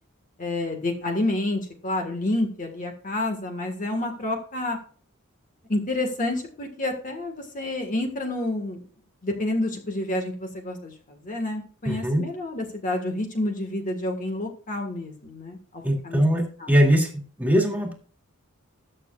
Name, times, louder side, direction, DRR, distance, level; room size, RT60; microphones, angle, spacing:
voice 1, 0.4-4.8 5.7-8.8 9.2-15.6 16.0-16.2, left 1 dB, 40° left, 3 dB, 1.6 m, -29 dB
voice 2, 11.8-12.2 15.8-17.9, equal, 10° right, 2 dB, 2.3 m, -21 dB
20.0 x 6.8 x 2.4 m, 0.43 s
head